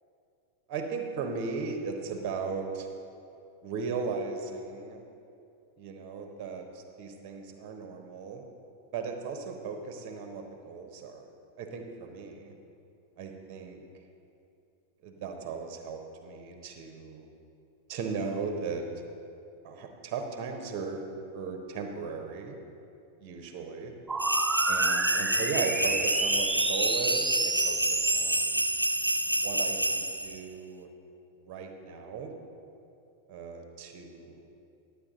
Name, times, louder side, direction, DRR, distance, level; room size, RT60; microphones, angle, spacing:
voice 1, 0.7-2.9 3.6-5.0 5.8-8.4 8.9-11.3 11.6-12.5 13.2-13.8 15.0-17.3 17.9-18.9 19.6-21.0 21.3-22.6 23.2-23.9 24.7-28.6 29.2-30.9 31.4-32.3 33.3-34.4, right 5 dB, 40° right, 4 dB, 1.0 m, -37 dB
sound 1, 24.1-29.6, right 3 dB, 10° right, 0.4 m, -31 dB
sound 2, 24.2-30.4, right 1 dB, 85° right, 0.3 m, -28 dB
11.0 x 8.3 x 3.9 m, 2.6 s
figure-of-eight pair, 90°, 0 cm